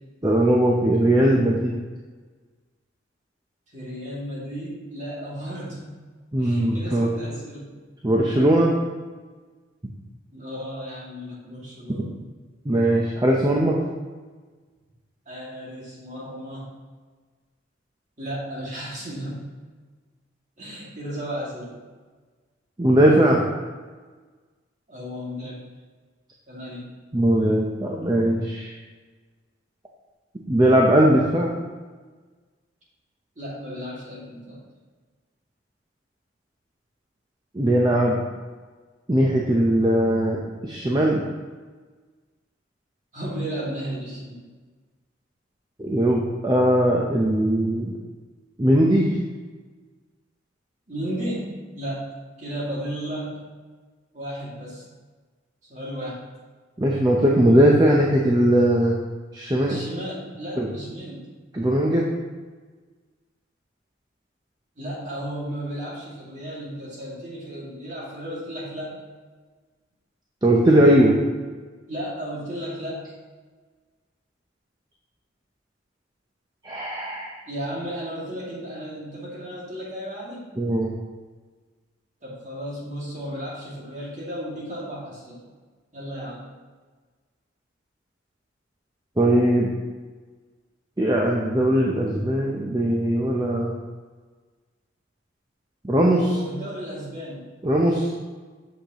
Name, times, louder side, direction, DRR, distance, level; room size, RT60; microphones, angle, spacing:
voice 1, 0.2-1.7 6.3-7.1 8.0-8.7 11.9-12.0 12.6-13.8 22.8-23.5 27.1-28.7 30.5-31.5 37.5-38.2 39.1-41.2 45.8-48.0 48.6-49.2 56.8-59.0 59.3-59.8 60.6-60.7 61.5-62.1 70.4-71.2 76.6-77.3 80.6-81.0 89.2-89.8 91.0-93.7 95.8-96.3 97.6-98.1, right 1 dB, 20° right, -2 dB, 0.6 m, -19 dB
voice 2, 3.7-6.0 6.4-7.7 10.3-12.1 15.3-16.7 18.2-19.5 20.6-21.7 24.9-25.6 26.5-26.9 33.4-34.6 43.1-44.4 50.9-53.5 54.1-54.9 55.7-56.2 59.6-61.3 64.8-69.0 71.9-73.1 77.5-80.5 82.2-85.4 85.9-86.5 96.3-97.5, equal, 35° right, -5 dB, 2.1 m, -34 dB
8.0 x 6.6 x 2.9 m, 1.4 s
head